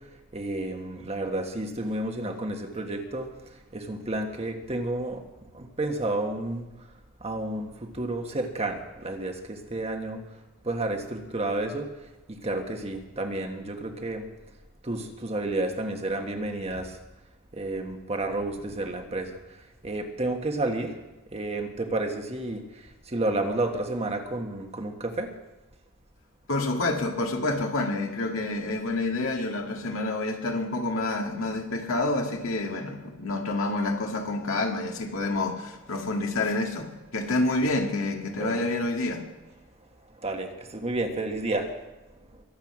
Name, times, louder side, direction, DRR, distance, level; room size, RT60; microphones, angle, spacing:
voice 1, 0.3-5.2 5.5-6.7 7.2-10.2 10.6-11.9 12.3-14.3 14.8-17.0 17.5-21.0 21.3-25.3 38.3-38.6 40.1-41.8 42.3-42.4, right 2 dB, 30° right, 1.4 m, -31 dB
voice 2, 26.5-39.3, left 2 dB, 70° left, 2.0 m, -28 dB
22.5 x 8.0 x 6.0 m
head